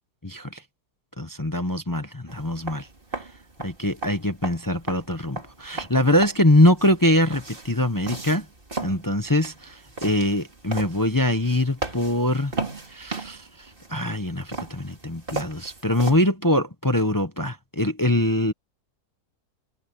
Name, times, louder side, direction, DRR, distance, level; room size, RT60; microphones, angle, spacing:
voice 1, 0.2-0.6 1.2-2.9 3.6-8.4 8.8-12.5 12.9-13.4 13.9-18.5, left 1 dB, 15° left, 0.7 m, -23 dB
sound 1, 2.3-16.2, right 3 dB, 30° right, 2.8 m, -36 dB
omnidirectional pair, 1.8 m